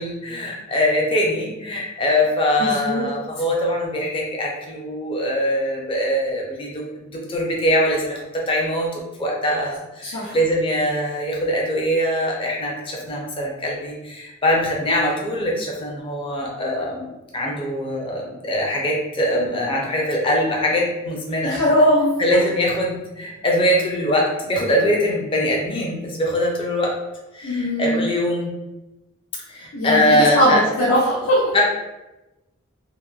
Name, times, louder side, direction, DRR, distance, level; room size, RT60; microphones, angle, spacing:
voice 1, 0.0-21.6 22.2-26.9 27.3-28.5 29.5-30.6 31.5-31.6, left 1 dB, 25° left, -2 dB, 0.4 m, -22 dB
voice 2, 2.6-3.1 10.0-10.4 21.4-22.1 27.4-28.1 29.7-31.5, equal, 75° left, -7 dB, 0.6 m, -20 dB
2.8 x 2.1 x 2.3 m, 1.0 s
head